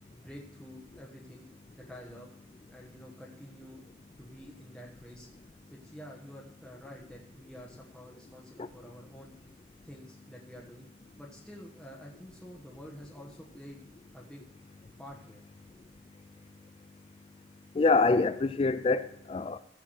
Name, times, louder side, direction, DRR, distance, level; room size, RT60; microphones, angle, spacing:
voice 1, 0.1-1.5 1.8-2.3 2.7-3.8 4.2-5.3 5.7-9.3 9.8-10.9 11.2-13.8 14.1-14.4 15.0-15.4, equal, 5° left, 1.2 m, -48 dB
voice 2, 17.7-19.6, left 3 dB, 30° left, 0.3 m, -25 dB
15.5 x 6.0 x 4.7 m
head